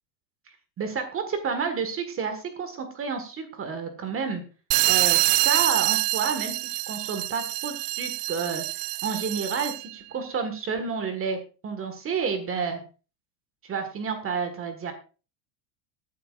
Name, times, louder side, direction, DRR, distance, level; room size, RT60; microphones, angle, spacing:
voice 1, 0.8-4.4 4.9-8.6 9.0-11.4 11.6-12.8 13.6-14.9, right 5 dB, 30° right, 8 dB, 1.6 m, -30 dB
sound 1, 4.7-9.9, right 22 dB, 75° right, 0.6 m, -25 dB
18.5 x 9.4 x 2.5 m, 0.34 s
supercardioid pair, 145°, 47 cm